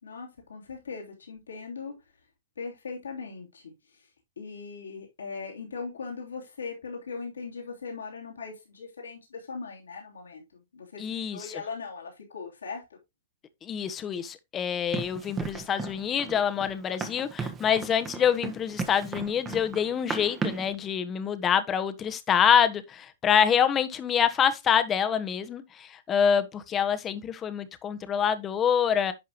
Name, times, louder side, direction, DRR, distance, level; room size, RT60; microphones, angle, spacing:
voice 1, 0.0-2.0 2.6-3.7 4.4-10.4 10.7-11.0 11.3-12.8, left 4 dB, 85° left, 3.1 m, -39 dB
voice 2, 11.0-11.6 13.6-29.1, left 8 dB, 25° left, 1.1 m, -26 dB
Run, 14.9-20.7, right 5 dB, 20° right, 1.4 m, -36 dB
10.5 x 5.4 x 3.0 m
hypercardioid pair, 120°, 0 cm